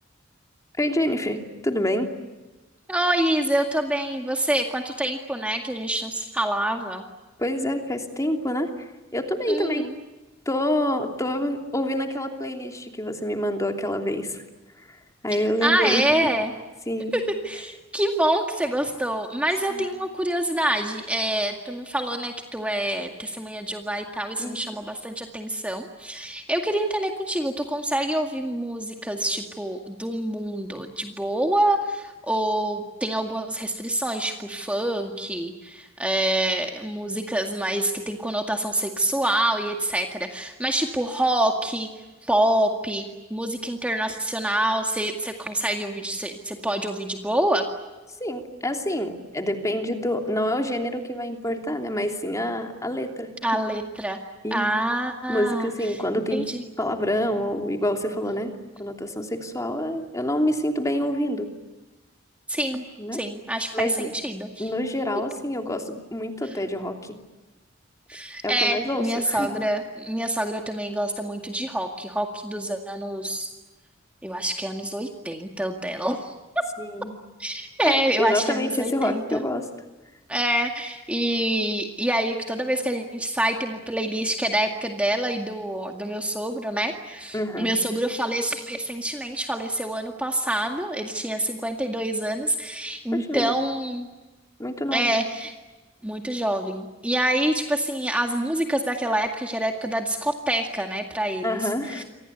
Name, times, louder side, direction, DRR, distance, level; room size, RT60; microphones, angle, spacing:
voice 1, 0.8-2.1 7.4-8.7 9.1-9.9 10.5-14.4 14.9-15.0 15.2-16.1 16.9-17.2 19.7-19.8 24.4-24.6 48.2-53.3 54.4-54.7 55.3-56.5 56.8-58.5 58.8-61.5 63.0-63.2 63.7-64.1 64.6-67.2 68.4-69.5 76.8-77.1 77.9-79.7 87.3-87.7 93.1-93.5 94.6-95.2 101.4-102.0, left 1 dB, 15° left, 3 dB, 3.0 m, -27 dB
voice 2, 2.9-7.0 9.5-9.9 15.6-16.5 17.1-41.9 42.2-43.0 43.3-47.6 53.4-54.2 54.5-55.7 56.3-56.6 62.5-62.8 63.1-64.7 68.1-73.5 74.2-76.3 77.4-79.4 80.3-94.1 94.9-95.5 96.0-102.0, right 1 dB, 5° right, 3 dB, 2.0 m, -26 dB
29.0 x 25.0 x 8.3 m, 1.1 s
head